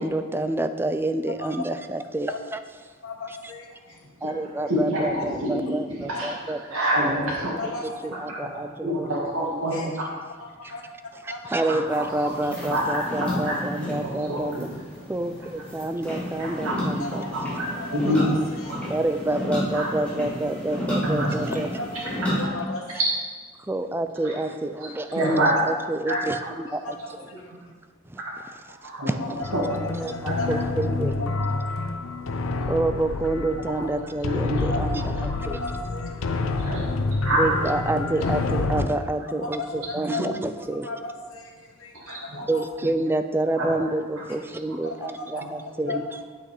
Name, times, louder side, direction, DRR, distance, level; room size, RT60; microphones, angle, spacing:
voice 1, 0.0-2.6 3.3-3.4 4.2-6.6 7.8-9.7 11.2-14.7 15.1-17.2 18.9-21.7 23.7-26.4 26.7-27.0 28.1-28.2 28.8-29.2 29.9-31.2 32.7-35.6 37.4-40.9 42.5-46.0, right 2 dB, 10° right, 9 dB, 0.4 m, -28 dB
voice 2, 3.0-4.0 6.1-6.2 6.8-7.1 7.6-8.1 9.7-9.9 10.7-10.8 11.3-11.5 15.2-15.3 17.0-17.3 17.7-18.8 22.0-22.8 25.2-25.3 26.1-26.2 26.8-26.9 27.4-27.5 29.2-29.3 29.8-30.7 31.2-32.3 34.7-34.8 35.1-36.1 39.6-40.2 40.8-42.7 44.8-45.2 45.6-46.0, left 3 dB, 85° left, 0 dB, 1.1 m, -36 dB
voice 3, 4.6-6.3 6.7-7.5 8.3-10.1 10.6-10.7 11.5-12.3 12.7-14.6 16.4-16.7 17.3-18.2 18.6-18.8 19.7-19.9 21.0-21.3 22.4-22.5 24.2-24.3 24.8-25.5 26.1-26.2 27.5-27.6 28.2-28.3 28.8-29.6 30.3-30.4 36.6-36.8 37.2-37.5 41.9-42.4 43.6-43.7 44.2-44.3 44.7-44.8 45.3-45.5, right 1 dB, 85° right, -5 dB, 2.0 m, -27 dB
sound 1, 11.9-22.5, equal, 5° left, 2.5 m, -32 dB
sound 2, 29.4-38.9, left 3 dB, 70° left, 0.6 m, -28 dB
8.6 x 6.5 x 4.9 m, 1.5 s
head